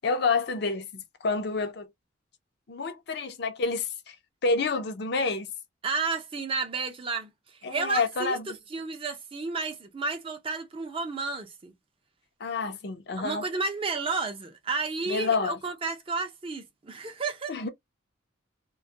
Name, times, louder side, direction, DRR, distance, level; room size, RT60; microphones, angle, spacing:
voice 1, 0.0-1.9 2.7-4.2 4.4-5.5 7.6-8.4 12.4-13.5 15.1-15.6 17.5-17.7, left 4 dB, 55° left, 0.5 m, -28 dB
voice 2, 5.8-8.4 8.7-11.7 13.2-17.5, right 4 dB, 25° right, 0.5 m, -32 dB
2.2 x 2.1 x 2.6 m
head